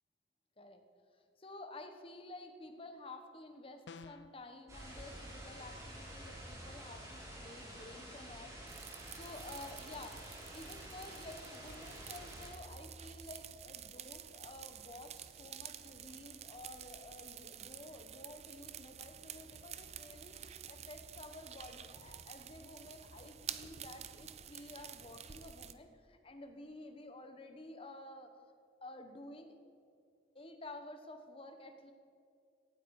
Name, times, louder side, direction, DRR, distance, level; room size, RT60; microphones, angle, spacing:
voice 1, 1.4-10.2 10.5-28.3 28.8-29.5 30.3-31.9, left 2 dB, 30° left, 6 dB, 1.2 m, -51 dB
sound 1, 3.9-4.4, left 4 dB, 80° left, 0.5 m, -50 dB
sound 2, 4.7-12.5, right 1 dB, 20° right, 4.1 m, -49 dB
sound 3, 8.7-25.7, right 9 dB, 40° right, 0.6 m, -50 dB
17.5 x 13.0 x 4.9 m, 2.5 s
head